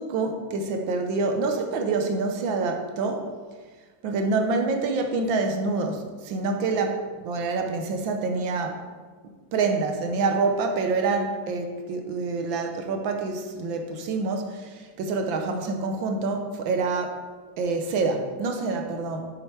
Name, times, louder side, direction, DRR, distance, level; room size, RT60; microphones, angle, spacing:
voice 1, 0.0-3.3 4.0-7.0 7.2-8.8 9.5-17.2 17.6-19.3, right 3 dB, 90° right, 4 dB, 1.7 m, -26 dB
7.7 x 6.5 x 4.7 m, 1.4 s
omnidirectional pair, 2.1 m